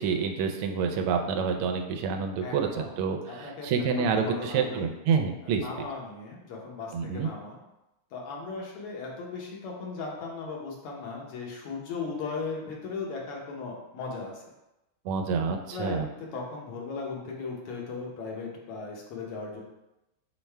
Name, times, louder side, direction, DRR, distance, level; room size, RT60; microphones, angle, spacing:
voice 1, 0.0-5.9 6.9-7.3 15.0-16.1, right 5 dB, 85° right, 5 dB, 1.5 m, -28 dB
voice 2, 2.4-2.9 3.3-3.7 4.0-4.9 5.4-7.6 8.1-14.5 15.7-19.6, left 4 dB, 90° left, -1 dB, 1.9 m, -37 dB
5.2 x 2.1 x 4.4 m, 0.93 s
omnidirectional pair, 2.4 m